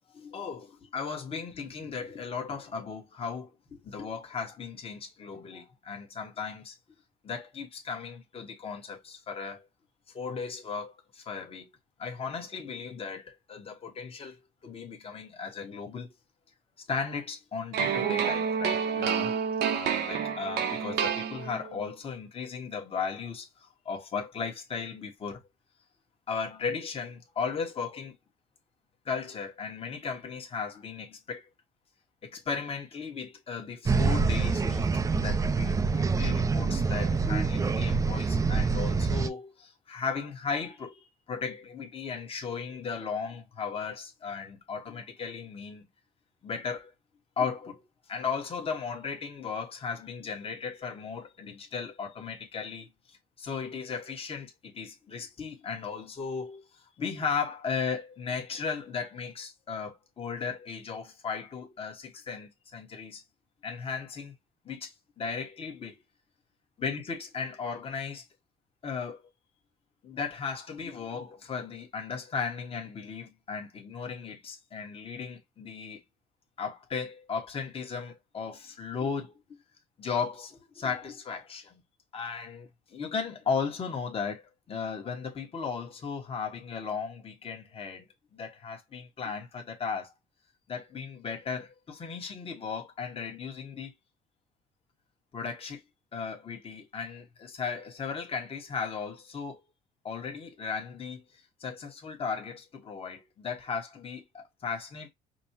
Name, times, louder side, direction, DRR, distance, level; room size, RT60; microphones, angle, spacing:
voice 1, 0.1-6.7 7.2-9.7 10.1-11.7 12.0-16.1 16.9-19.3 19.7-25.4 26.3-28.1 29.0-31.5 32.2-45.9 46.4-46.9 47.4-63.2 63.6-64.3 64.6-66.0 66.8-68.2 68.8-69.2 70.0-76.0 76.6-79.4 80.0-81.8 82.1-88.1 88.3-90.1 90.7-93.9 95.3-95.8 96.1-99.6 100.0-105.1, left 5 dB, 35° left, 1.2 m, -36 dB
sound 1, 17.7-21.8, right 7 dB, 75° right, 0.8 m, -29 dB
sound 2, 33.9-39.3, right 4 dB, 20° right, 0.4 m, -26 dB
5.2 x 2.1 x 2.8 m
cardioid pair, 110°, 17 cm